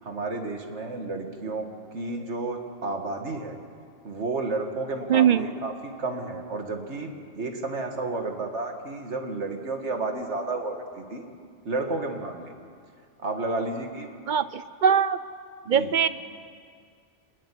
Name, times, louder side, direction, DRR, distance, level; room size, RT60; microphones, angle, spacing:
voice 1, 0.0-3.6 4.0-11.2 11.7-12.5 13.2-14.1 15.6-15.9, right 3 dB, 70° right, 3 dB, 2.1 m, -31 dB
voice 2, 5.1-5.5 14.3-15.2 15.7-16.1, right 8 dB, 50° right, 14 dB, 0.6 m, -21 dB
26.5 x 9.9 x 9.8 m, 2.2 s
omnidirectional pair, 1.2 m